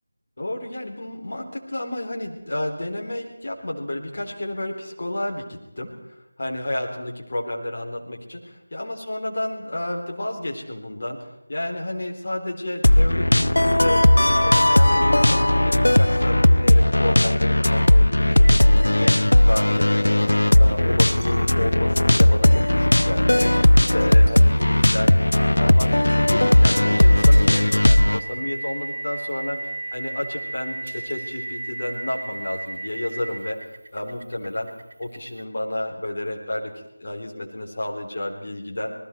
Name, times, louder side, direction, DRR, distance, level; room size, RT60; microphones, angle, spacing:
voice 1, 0.4-20.2 20.6-23.5 23.9-25.2 25.5-29.6 29.9-33.6 33.9-34.7 35.0-38.9, left 1 dB, 45° left, 0 dB, 4.0 m, -31 dB
sound 1, 12.8-28.2, left 1 dB, 70° left, 0.7 m, -17 dB
sound 2, 18.4-35.4, right 2 dB, 45° right, 3.0 m, -36 dB
sound 3, 21.1-21.9 23.9-25.1 27.3-28.3 30.9-32.0, right 2 dB, 25° right, 4.9 m, -48 dB
27.5 x 20.0 x 4.7 m, 0.92 s
figure-of-eight pair, 165°, 0 cm